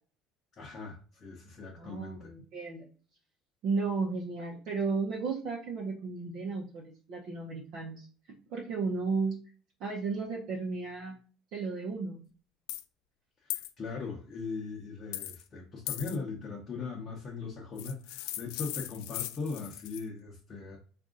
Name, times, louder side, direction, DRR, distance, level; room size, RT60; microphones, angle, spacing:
voice 1, 0.6-2.3 13.4-20.8, left 4 dB, 25° left, -3 dB, 0.8 m, -39 dB
voice 2, 1.7-2.9 3.6-8.1 8.5-9.4 9.8-11.2 11.5-12.2, right 4 dB, 50° right, -3 dB, 0.8 m, -34 dB
sound 1, 12.7-12.8 13.5-13.7 15.1-15.4 15.9-16.2 17.8-20.0, left 15 dB, 85° left, 0.3 m, -38 dB
4.1 x 2.5 x 3.7 m, 0.40 s
cardioid pair, 165°, 0 cm